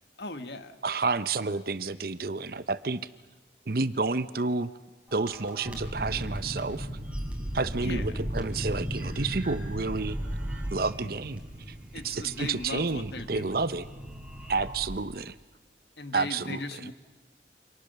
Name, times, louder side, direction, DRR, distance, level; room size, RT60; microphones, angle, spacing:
voice 1, 0.2-0.8 7.8-8.2 11.9-13.5 16.0-16.9, left 2 dB, 70° left, 9 dB, 1.6 m, -38 dB
voice 2, 0.8-3.1 3.7-4.7 5.1-6.9 7.5-10.2 10.7-11.4 11.7-11.8 12.0-13.9 14.5-15.3 16.1-16.6, right 3 dB, 55° right, 14 dB, 0.8 m, -30 dB
sound 1, 5.1-14.9, equal, 5° right, 4.2 m, -36 dB
29.0 x 26.5 x 6.8 m, 1.2 s
head